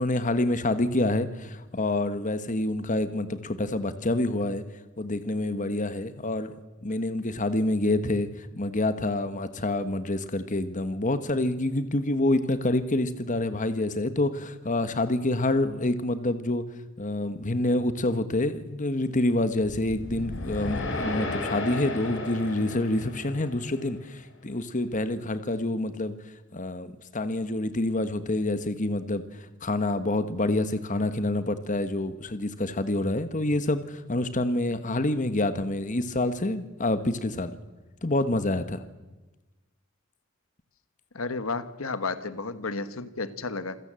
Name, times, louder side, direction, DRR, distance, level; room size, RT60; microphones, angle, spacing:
voice 1, 0.0-4.6 5.0-6.5 6.8-16.6 17.0-26.1 26.5-29.2 29.6-37.5 38.0-38.8, left 2 dB, 40° left, 11 dB, 1.3 m, -27 dB
sound 1, 19.6-23.9, left 2 dB, 60° left, 4.5 m, -34 dB
voice 2, 41.1-43.8, left 3 dB, 80° left, 13 dB, 1.4 m, -32 dB
27.5 x 16.5 x 7.6 m, 1.1 s
head